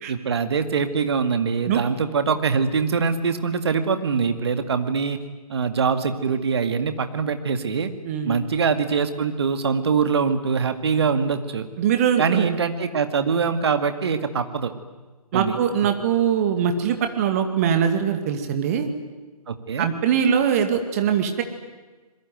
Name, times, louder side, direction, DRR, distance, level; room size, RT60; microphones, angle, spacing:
voice 1, 0.1-5.2 5.5-7.9 8.2-11.7 12.2-14.7 15.3-15.6 19.5-19.9, right 5 dB, 40° right, 9 dB, 2.1 m, -23 dB
voice 2, 8.0-8.4 11.8-12.5 15.3-18.9 19.8-21.4, right 8 dB, 25° right, 7 dB, 2.3 m, -22 dB
27.0 x 22.0 x 9.4 m, 1.3 s
figure-of-eight pair, 145°, 20 cm